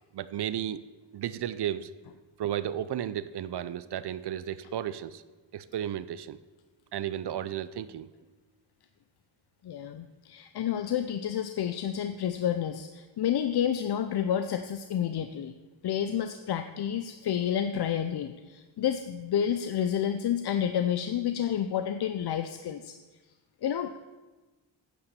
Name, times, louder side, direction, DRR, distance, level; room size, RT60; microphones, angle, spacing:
voice 1, 0.1-0.8 1.1-1.9 2.4-5.2 5.5-6.4 6.9-8.1, right 10 dB, 65° right, 15 dB, 0.5 m, -33 dB
voice 2, 9.6-15.5 15.8-23.0 23.6-24.0, left 9 dB, 60° left, 9 dB, 0.6 m, -30 dB
9.5 x 7.0 x 6.8 m, 1.2 s
wide cardioid pair, 130°, 45 cm